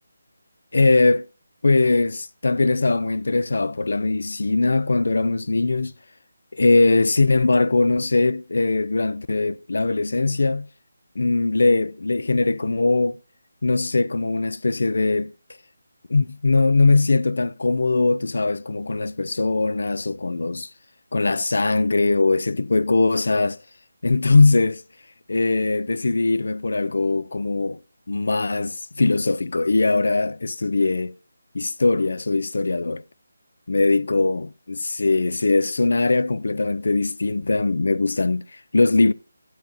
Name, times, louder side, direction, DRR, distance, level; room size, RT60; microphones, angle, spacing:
voice 1, 0.7-1.3 1.6-5.9 6.5-10.7 11.2-13.2 13.6-15.3 16.1-20.7 21.1-23.6 24.0-24.8 25.3-27.8 28.1-31.1 31.5-33.0 33.7-39.1, left 3 dB, 70° left, 0.4 m, -21 dB
12.0 x 8.8 x 2.6 m
figure-of-eight pair, 170°, 0 cm